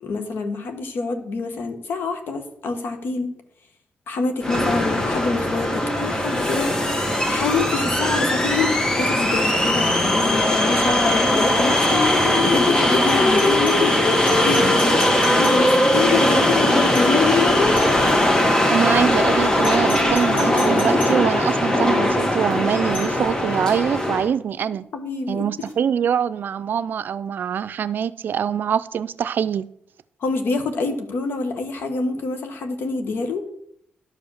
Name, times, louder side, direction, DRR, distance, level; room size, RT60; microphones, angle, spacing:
voice 1, 0.0-3.3 4.1-14.0 14.4-14.8 15.4-17.8 24.9-25.7 30.2-33.4, left 4 dB, 75° left, 1.6 m, -26 dB
sound 1, 4.4-24.3, left 1 dB, 20° left, 1.5 m, -19 dB
Doorbell, 13.1-16.0 16.9-17.3 17.7-18.3 19.6-21.3 22.9-23.2 25.6-25.7, equal, 55° left, 2.3 m, -36 dB
voice 2, 18.7-24.8 25.3-29.7, right 8 dB, 65° right, 0.5 m, -24 dB
11.5 x 5.0 x 7.2 m
cardioid pair, 110°, 4 cm